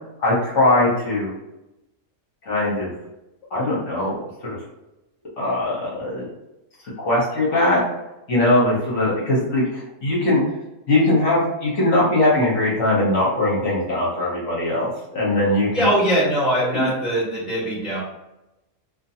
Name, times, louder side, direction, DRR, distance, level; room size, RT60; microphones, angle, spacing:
voice 1, 0.2-1.3 2.4-2.9 3.5-4.2 4.4-4.6 5.4-6.2 7.0-7.8 8.3-10.4 10.9-15.9 16.7-16.9, left 1 dB, 60° left, -6 dB, 1.2 m, -20 dB
voice 2, 15.7-18.0, right 1 dB, ahead, -8 dB, 1.0 m, -21 dB
2.6 x 2.5 x 2.7 m, 0.94 s
omnidirectional pair, 1.5 m